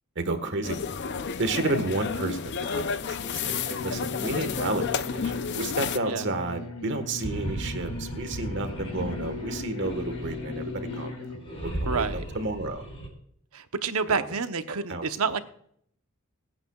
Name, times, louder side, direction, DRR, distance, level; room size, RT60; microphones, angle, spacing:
voice 1, 0.1-0.8 1.4-11.3 11.6-12.1 12.3-12.8 14.1-14.2 14.9-15.0, right 2 dB, 55° right, 9 dB, 1.5 m, -31 dB
sound 1, 0.6-6.0, left 6 dB, 55° left, 0.6 m, -31 dB
sound 2, 3.4-11.4, left 3 dB, 80° left, 2.6 m, -38 dB
sound 3, 7.0-13.1, equal, 25° left, 5.1 m, -36 dB
voice 2, 11.9-12.2 13.5-15.4, right 5 dB, 85° right, 9 dB, 0.9 m, -28 dB
22.5 x 9.0 x 2.4 m, 0.66 s
head